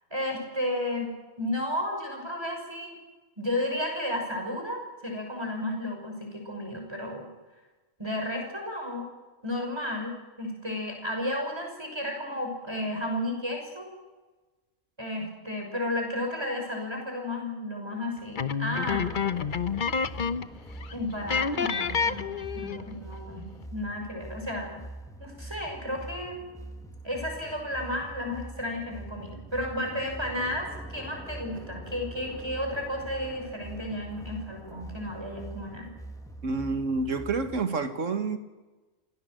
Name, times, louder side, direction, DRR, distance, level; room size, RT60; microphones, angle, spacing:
voice 1, 0.1-3.0 3.4-7.3 8.0-9.1 9.4-13.9 15.0-19.1 20.9-24.8 25.2-26.4 27.0-35.9, left 1 dB, 20° right, 6.2 m, -33 dB
sound 1, 18.3-20.6 20.8-20.9 21.3-22.9, left 6 dB, 40° left, 0.9 m, -28 dB
sound 2, 18.9-37.7, right 1 dB, ahead, 1.7 m, -43 dB
voice 2, 36.4-38.4, right 4 dB, 65° right, 2.1 m, -28 dB
26.5 x 17.0 x 7.8 m
omnidirectional pair, 1.4 m